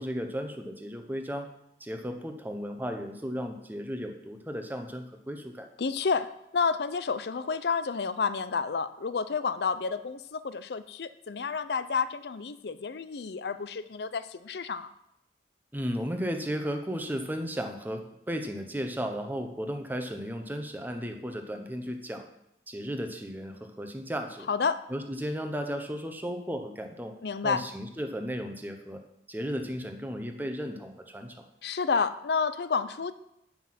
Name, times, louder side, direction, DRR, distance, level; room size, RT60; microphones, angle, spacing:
voice 1, 0.0-1.5 1.8-5.7 15.7-22.3 22.7-24.5 24.9-27.1 27.4-29.0 29.3-31.5, equal, 10° right, 5 dB, 0.9 m, -35 dB
voice 2, 5.8-14.9 24.5-24.8 27.2-27.6 31.6-33.1, left 5 dB, 70° left, 13 dB, 0.5 m, -30 dB
9.5 x 5.8 x 5.9 m, 0.82 s
head